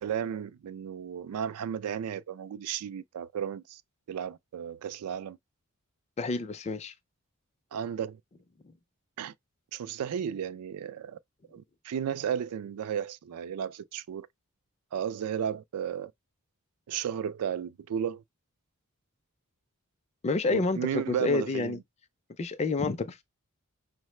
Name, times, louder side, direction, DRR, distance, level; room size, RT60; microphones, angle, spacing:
voice 1, 0.0-3.8 4.1-5.4 7.7-8.2 9.2-9.3 9.7-11.2 11.5-14.3 14.9-16.1 16.9-18.2 20.5-21.8, right 8 dB, 85° right, 0.3 m, -34 dB
voice 2, 6.2-6.9 20.2-21.8 22.4-23.2, left 3 dB, 30° left, 0.4 m, -29 dB
5.5 x 2.0 x 3.1 m
head